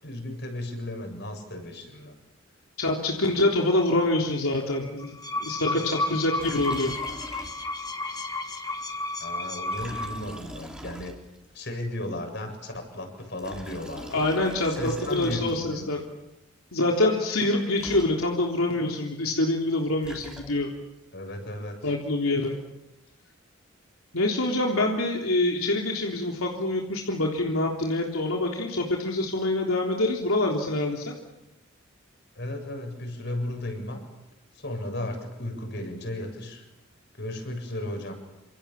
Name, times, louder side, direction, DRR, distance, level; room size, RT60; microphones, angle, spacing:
voice 1, 0.0-2.1 5.6-5.8 9.2-11.1 11.5-14.3 14.7-16.0 21.1-21.9 32.4-34.0 34.5-36.7 37.2-38.1, left 1 dB, 55° left, 4 dB, 7.4 m, -35 dB
voice 2, 2.8-5.1 5.4-7.0 14.1-16.0 16.7-20.7 21.8-22.5 24.1-31.1, left 2 dB, 85° left, 0 dB, 3.5 m, -25 dB
sound 1, 5.0-10.4, left 2 dB, 20° left, 1.8 m, -32 dB
Liquid, 6.4-7.9 8.2-8.3 9.6-11.6 13.2-15.8 17.5-17.6 17.8-18.6 19.7-20.9, equal, 5° right, 3.9 m, -43 dB
28.5 x 26.5 x 7.2 m, 0.91 s
head